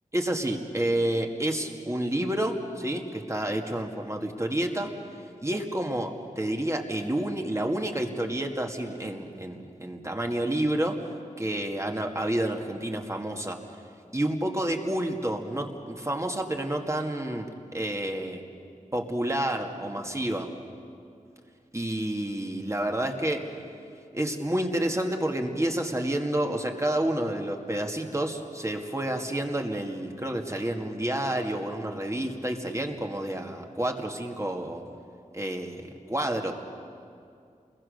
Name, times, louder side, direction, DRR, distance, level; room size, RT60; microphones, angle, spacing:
voice 1, 0.1-4.9 5.4-11.1 11.4-13.6 14.1-18.4 18.9-20.5 21.7-23.5 24.1-34.8 35.3-36.5, right 1 dB, 20° right, 2 dB, 2.2 m, -29 dB
29.0 x 21.5 x 6.7 m, 2.4 s
wide cardioid pair, 70°, 14 cm